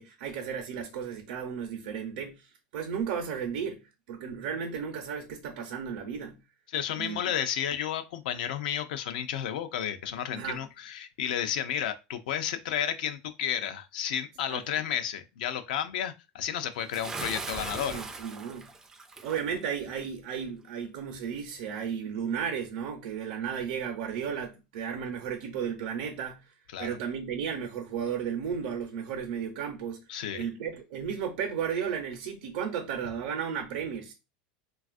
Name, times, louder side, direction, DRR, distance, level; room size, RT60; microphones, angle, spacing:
voice 1, 0.0-2.4 2.7-3.8 4.1-6.4 7.0-7.2 10.3-10.6 14.5-14.6 17.8-18.7 19.2-26.4 26.8-30.0 30.3-34.1, right 7 dB, 70° right, 0.7 m, -34 dB
voice 2, 6.7-18.0 26.7-26.9 30.1-30.4, left 9 dB, 80° left, 0.4 m, -32 dB
Bathtub (filling or washing) / Splash splatter, 16.9-19.4, right 3 dB, 10° right, 0.3 m, -39 dB
3.3 x 2.3 x 2.4 m
supercardioid pair, 150°, 5 cm